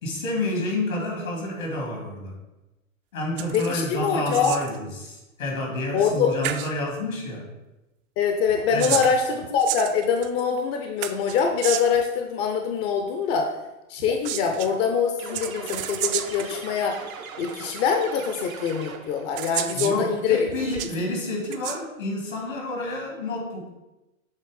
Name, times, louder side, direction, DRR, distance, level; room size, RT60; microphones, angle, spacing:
voice 1, 0.0-2.4 3.1-7.5 8.7-9.1 19.7-23.7, left 1 dB, 75° left, 0 dB, 2.4 m, -29 dB
sound 1, 3.4-3.8 4.1-4.8 6.0-6.2 6.4-6.7 8.5-10.4 11.0-12.0 14.0-14.7 15.3-16.6 17.5-17.6 18.7-18.8 19.4-20.0 20.5-21.0 21.4-21.8, right 12 dB, 45° right, 0.5 m, -31 dB
voice 2, 3.5-4.5 5.9-6.3 8.2-13.5 13.9-17.0 17.4-20.5, left 6 dB, 35° left, 4 dB, 0.7 m, -24 dB
sound 2, 15.2-19.3, right 6 dB, 80° right, 0.8 m, -39 dB
7.6 x 3.1 x 4.9 m, 1.0 s
figure-of-eight pair, 85°, 41 cm